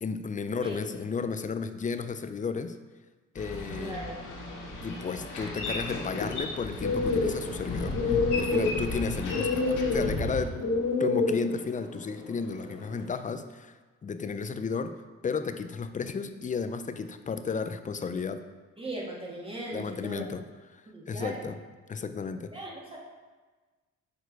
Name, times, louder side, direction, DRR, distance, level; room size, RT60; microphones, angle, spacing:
voice 1, 0.0-2.7 3.3-3.9 4.8-10.6 11.0-13.7 14.0-14.9 15.2-18.4 19.7-20.4 21.1-21.6 21.9-22.5, left 5 dB, 25° left, 10 dB, 0.5 m, -33 dB
Boat Water vehicle, 3.3-10.4, left 2 dB, 80° left, 1.9 m, -35 dB
voice 2, 3.7-4.2 18.8-20.2 20.9-21.5 22.5-23.0, right 1 dB, 20° right, -3 dB, 1.7 m, -38 dB
sound 1, 6.8-13.0, left 3 dB, 65° left, 2.1 m, -29 dB
6.7 x 4.5 x 4.6 m, 1.3 s
cardioid pair, 90°, 30 cm